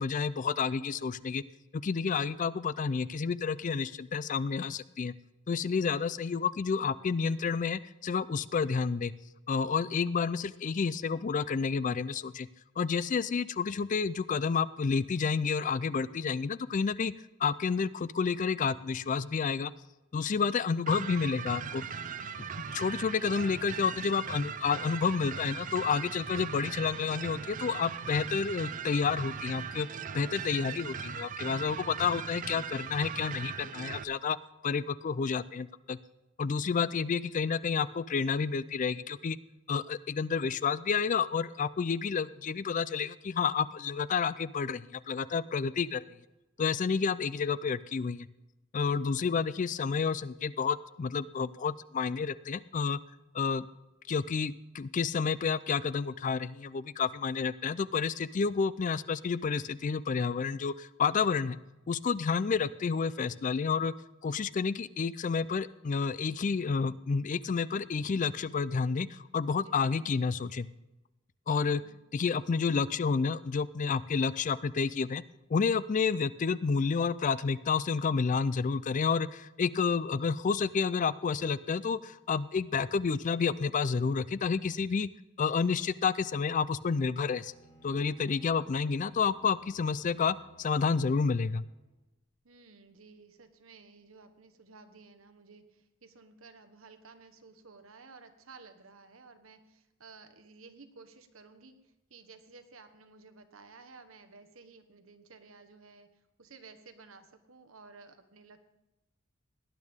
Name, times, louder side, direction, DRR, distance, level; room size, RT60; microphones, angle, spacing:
voice 1, 0.0-1.4 1.7-5.1 5.5-9.1 9.5-12.5 12.8-17.1 17.4-19.7 20.1-21.8 22.6-29.9 30.1-34.4 34.6-36.0 36.4-39.4 39.7-46.2 46.6-48.3 48.7-53.0 53.3-53.7 54.1-61.6 61.9-63.9 64.2-70.7 71.5-71.8 72.1-75.2 75.5-85.1 85.4-87.5 87.8-91.6, left 5 dB, 40° left, 17 dB, 0.4 m, -30 dB
voice 2, 5.8-6.1 22.7-22.9 36.5-36.9 48.8-49.2 69.6-69.8 71.7-72.0 92.4-101.7 102.1-106.1 106.4-108.6, right 4 dB, 85° right, 8 dB, 1.2 m, -55 dB
sound 1, 20.9-34.0, right 6 dB, 40° right, 0.5 m, -39 dB
Bowed string instrument, 87.2-92.0, right 2 dB, 65° left, 5.4 m, -60 dB
18.0 x 10.5 x 3.6 m, 1.0 s
head